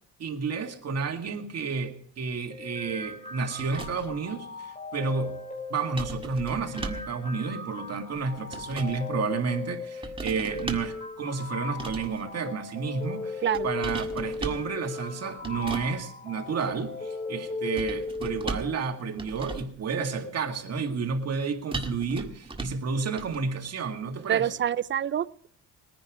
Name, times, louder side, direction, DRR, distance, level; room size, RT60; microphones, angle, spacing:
voice 1, 0.2-5.4 5.7-24.5, right 5 dB, 55° right, 4 dB, 2.1 m, -31 dB
sound 1, 2.5-18.5, left 3 dB, 25° left, 6.1 m, -37 dB
sound 2, 3.6-4.2 6.0-7.2 8.2-9.0 10.0-11.0 11.7-12.2 13.5-14.7 15.4-15.9 17.8-18.8 19.2-19.8 21.7-22.9 23.2-23.4, right 3 dB, 15° right, 1.7 m, -37 dB
voice 2, 24.3-25.5, right 10 dB, 40° right, 19 dB, 0.5 m, -27 dB
20.5 x 10.5 x 4.9 m, 0.62 s
cardioid pair, 90°, 30 cm